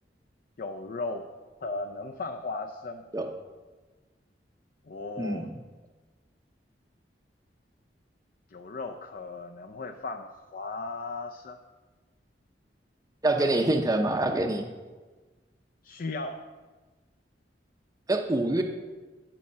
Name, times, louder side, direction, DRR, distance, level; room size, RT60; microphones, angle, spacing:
voice 1, 0.6-1.3 1.6-3.1 4.9-5.5 8.5-11.6 15.8-16.4, left 3 dB, 55° left, 5 dB, 0.6 m, -36 dB
voice 2, 5.2-5.6 13.2-14.7 18.1-18.6, right 2 dB, 20° right, 3 dB, 0.6 m, -25 dB
11.0 x 6.3 x 5.5 m, 1.3 s
head